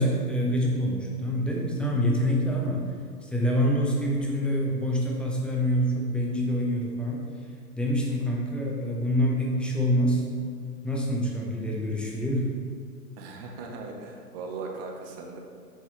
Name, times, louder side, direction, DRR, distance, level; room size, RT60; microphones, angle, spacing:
voice 1, 0.0-2.9 3.2-7.3 7.7-10.2 10.8-12.5, equal, ahead, -2 dB, 0.7 m, -26 dB
voice 2, 13.2-15.4, right 4 dB, 40° right, 2 dB, 1.2 m, -38 dB
7.6 x 5.9 x 3.4 m, 2.1 s
figure-of-eight pair, 105°, 47 cm